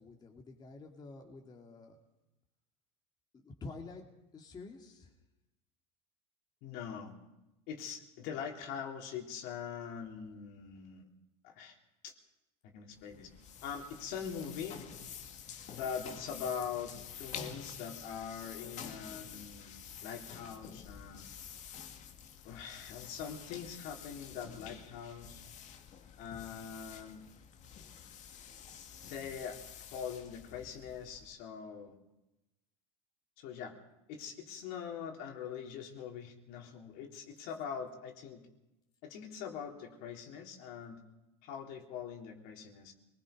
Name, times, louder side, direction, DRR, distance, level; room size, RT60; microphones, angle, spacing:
voice 1, 0.0-2.0 3.3-4.1 4.3-5.1, left 3 dB, 25° left, 0 dB, 2.5 m, -49 dB
voice 2, 6.6-7.2 7.7-11.1 11.4-11.8 12.0-12.1 12.6-13.3 13.6-14.8 15.7-21.3 22.4-25.4 26.2-27.2 29.1-29.6 29.9-32.0 33.4-33.8 34.1-38.4 39.0-41.0 41.4-42.9, left 7 dB, 60° left, 2 dB, 3.5 m, -43 dB
sound 1, 12.9-31.4, left 7 dB, 45° left, 1.9 m, -49 dB
25.5 x 20.5 x 5.3 m, 0.97 s
supercardioid pair, 120°, 17 cm